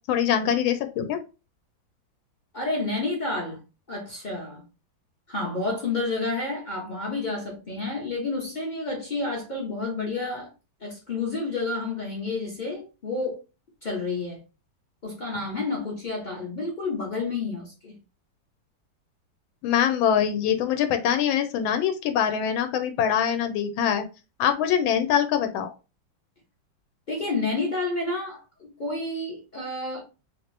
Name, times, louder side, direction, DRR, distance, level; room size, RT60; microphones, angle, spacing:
voice 1, 0.1-1.2 19.6-24.0 24.4-25.7, left 9 dB, 90° left, 1.4 m, -23 dB
voice 2, 2.5-3.6 3.9-4.6 5.3-10.5 10.8-13.4 13.8-14.4 15.0-17.9 27.1-30.0, left 3 dB, 45° left, 0.5 m, -30 dB
3.0 x 2.9 x 3.2 m
omnidirectional pair, 2.1 m